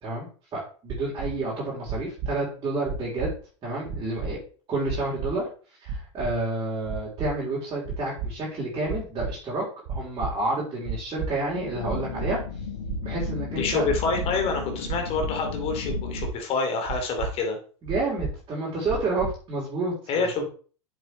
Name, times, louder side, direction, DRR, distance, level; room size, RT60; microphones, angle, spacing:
voice 1, 0.0-3.3 3.6-4.4 4.7-5.5 5.8-12.4 13.0-13.9 17.8-20.4, right 2 dB, 30° right, -6 dB, 3.9 m, -30 dB
sound 1, 0.9-1.3 1.9-2.3 2.9-3.3 3.9-4.3 4.9-5.3 5.9-6.3 6.9-7.3 7.9-8.3 8.9-9.3 9.9-10.3 10.9-11.3 11.9-12.3 12.9-13.3 13.9-14.3 14.9-15.3 15.9-16.3 16.9-17.3 17.9-18.3 18.9-19.3, right 5 dB, 50° right, 1.4 m, -31 dB
sound 2, 11.4-16.3, left 5 dB, 75° left, 1.2 m, -34 dB
voice 2, 13.6-17.6 20.1-20.4, left 4 dB, 40° left, 4 dB, 2.8 m, -27 dB
8.1 x 7.0 x 3.4 m, 0.40 s
hypercardioid pair, 90°, 16 cm